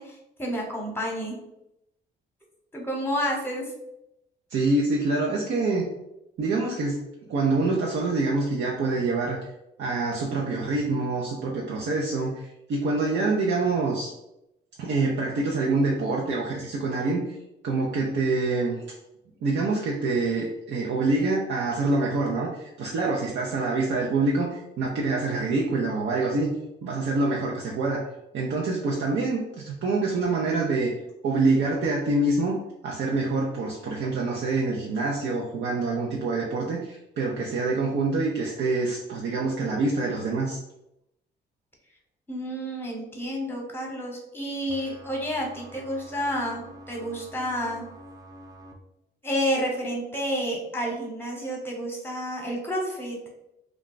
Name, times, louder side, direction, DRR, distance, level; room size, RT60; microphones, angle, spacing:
voice 1, 0.0-1.4 2.7-3.6 42.3-47.8 49.2-53.2, equal, 10° left, -1 dB, 1.0 m, -30 dB
voice 2, 4.5-5.9 6.4-7.0 7.3-9.4 9.8-14.1 14.8-17.3 17.6-18.8 19.4-26.5 26.8-28.0 28.3-30.9 31.2-32.6 32.8-40.6, right 3 dB, 65° right, -3 dB, 0.6 m, -26 dB
sound 1, 44.7-48.7, right 1 dB, 20° right, 0.4 m, -46 dB
2.3 x 2.2 x 3.8 m, 0.85 s
cardioid pair, 90°, 20 cm